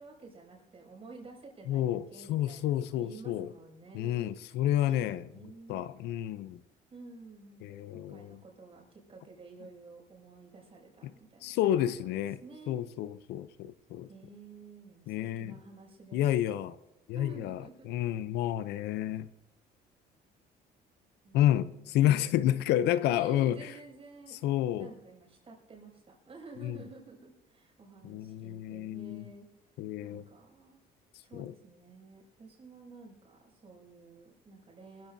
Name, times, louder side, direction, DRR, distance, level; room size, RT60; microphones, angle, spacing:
voice 1, 0.0-4.2 4.9-5.9 6.9-12.8 14.1-16.5 17.1-18.0 21.2-21.8 22.5-22.6 22.8-24.4 24.8-29.5 30.0-30.8 31.2-35.1, right 3 dB, 35° right, 6.3 m, -52 dB
voice 2, 1.7-3.5 3.9-5.2 5.7-6.6 7.6-8.4 11.4-12.4 12.7-14.1 15.1-15.5 16.1-16.8 17.1-19.3 21.3-23.7 24.4-24.9 26.6-26.8 28.0-29.3 29.8-30.2 31.3-31.5, left 12 dB, 85° left, 0.6 m, -30 dB
24.0 x 15.0 x 2.7 m
cardioid pair, 110°, 17 cm